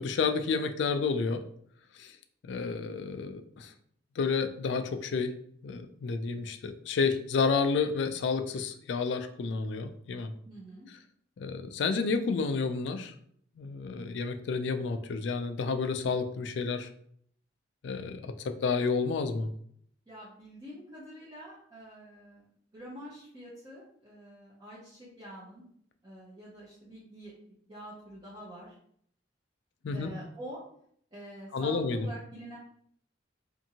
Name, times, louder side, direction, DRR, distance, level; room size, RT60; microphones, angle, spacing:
voice 1, 0.0-1.4 2.0-2.2 2.4-3.7 4.2-5.3 5.6-10.3 11.4-13.1 13.6-16.9 17.8-19.5 29.8-30.1 31.5-32.1, left 4 dB, 65° left, 8 dB, 0.3 m, -30 dB
voice 2, 10.4-10.9 20.1-22.5 22.7-25.6 26.0-27.3 27.7-28.8 29.9-30.6 31.1-32.6, right 1 dB, 20° right, -8 dB, 0.7 m, -46 dB
2.7 x 2.5 x 2.7 m, 0.65 s
head